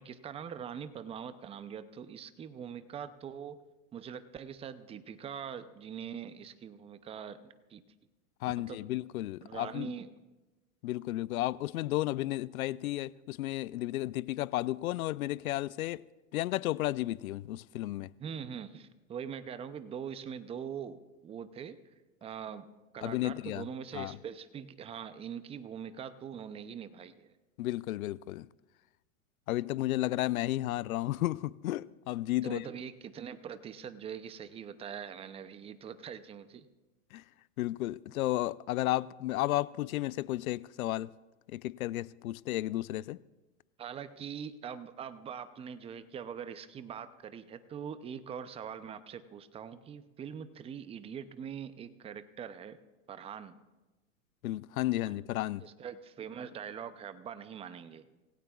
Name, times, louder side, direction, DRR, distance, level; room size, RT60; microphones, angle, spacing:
voice 1, 0.0-3.6 3.9-7.8 8.4-8.8 9.4-10.2 18.2-21.8 22.2-22.7 22.9-27.3 32.4-36.7 43.8-52.8 53.1-53.5 55.6-58.0, right 8 dB, 15° right, 0.5 m, -43 dB
voice 2, 8.4-9.9 10.8-16.0 16.3-18.1 23.0-23.7 23.9-24.2 27.6-28.5 29.5-32.6 37.1-37.2 37.6-41.1 41.5-43.2 54.4-55.7, left 16 dB, 85° left, 0.5 m, -33 dB
26.5 x 16.5 x 2.4 m
hypercardioid pair, 130°, 42 cm